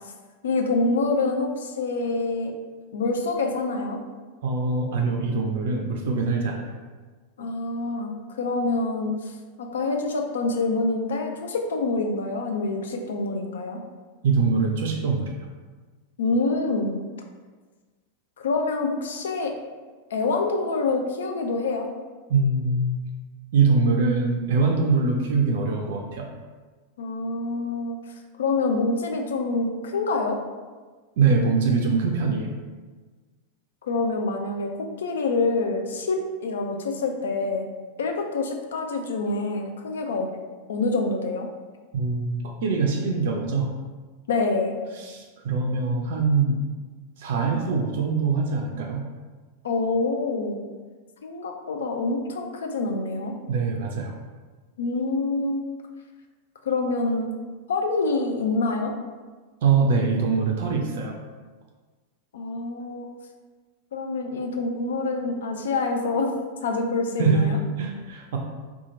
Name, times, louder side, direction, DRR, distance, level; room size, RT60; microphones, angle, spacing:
voice 1, 0.4-2.5 2.9-4.0 7.4-9.1 9.6-13.8 16.2-17.0 18.4-19.5 20.1-21.9 27.0-28.0 28.4-30.4 33.8-37.7 38.0-40.3 40.7-41.5 44.3-44.8 49.6-50.6 51.2-53.3 54.8-55.6 56.6-57.3 57.7-58.9 62.3-63.1 63.9-66.3 66.6-67.6, left 3 dB, 65° left, 3 dB, 0.4 m, -26 dB
voice 2, 4.4-6.7 7.4-7.5 14.2-15.3 22.3-23.0 23.5-26.3 31.2-32.5 41.9-43.7 44.9-46.6 47.2-49.0 53.5-54.1 59.6-61.2 67.2-68.4, right 4 dB, 55° right, 1 dB, 0.4 m, -23 dB
2.8 x 2.4 x 3.7 m, 1.4 s
figure-of-eight pair, 90°, 0 cm